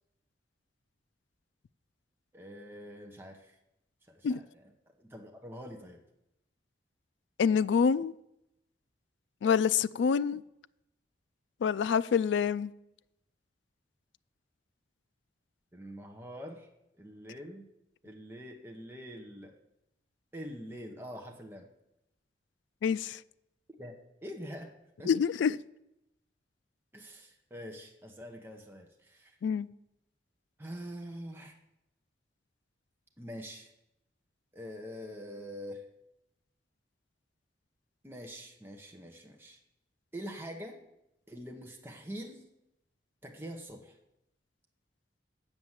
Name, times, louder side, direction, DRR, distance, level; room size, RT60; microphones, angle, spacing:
voice 1, 2.3-3.5 4.1-6.0 15.7-16.7 17.0-17.6 18.0-19.5 20.3-21.7 23.8-24.0 24.2-25.2 26.9-29.4 30.6-31.6 33.2-33.7 34.5-35.8 38.0-39.6 40.1-40.8 41.3-42.4 43.2-44.0, equal, 15° right, 0.9 m, -45 dB
voice 2, 7.4-8.1 9.4-10.4 11.6-12.7 22.8-23.2 25.1-25.6 29.4-29.7, left 6 dB, 90° left, 0.3 m, -26 dB
7.9 x 6.8 x 7.3 m
head